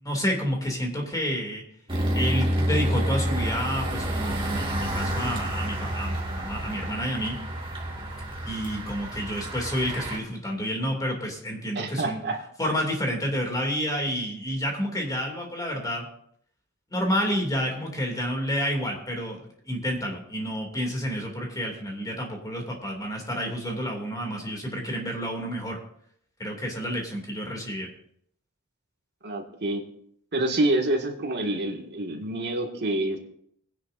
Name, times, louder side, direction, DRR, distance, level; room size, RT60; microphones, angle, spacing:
voice 1, 0.0-1.6 2.1-7.4 8.4-12.2 12.6-16.0 16.9-19.4 19.6-25.8 26.4-27.9, equal, 15° left, 0 dB, 2.7 m, -29 dB
sound 1, 1.9-10.2, right 1 dB, 25° right, 2.1 m, -29 dB
voice 2, 11.8-12.4 29.2-29.8 30.3-33.2, right 1 dB, 50° right, 1 dB, 2.1 m, -27 dB
21.0 x 10.0 x 2.7 m, 0.67 s
head